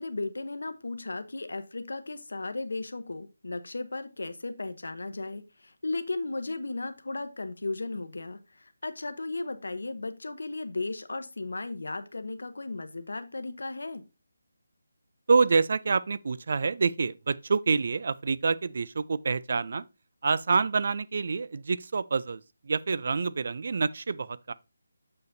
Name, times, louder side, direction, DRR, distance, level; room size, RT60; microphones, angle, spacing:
voice 1, 0.0-14.0, left 2 dB, 80° left, 0.9 m, -35 dB
voice 2, 15.3-19.8 20.2-24.5, right 4 dB, 40° right, 0.3 m, -27 dB
6.8 x 6.7 x 2.6 m
figure-of-eight pair, 175°, 0 cm